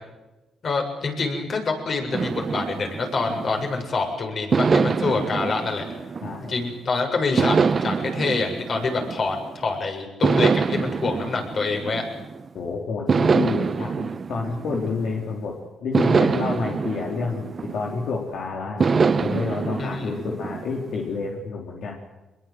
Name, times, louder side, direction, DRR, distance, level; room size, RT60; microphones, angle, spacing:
voice 1, 0.6-5.9 6.4-12.0 19.8-20.2, left 4 dB, 45° left, 3 dB, 7.4 m, -26 dB
sound 1, 2.1-3.9 4.5-6.8 7.4-9.6 10.2-12.5 13.1-15.3 15.9-18.2 18.8-21.1, right 5 dB, 40° right, 0.9 m, -25 dB
voice 2, 6.2-6.5 12.5-22.0, left 4 dB, 70° left, -1 dB, 4.0 m, -29 dB
24.0 x 22.0 x 8.0 m, 1.1 s
cardioid pair, 90°, 0 cm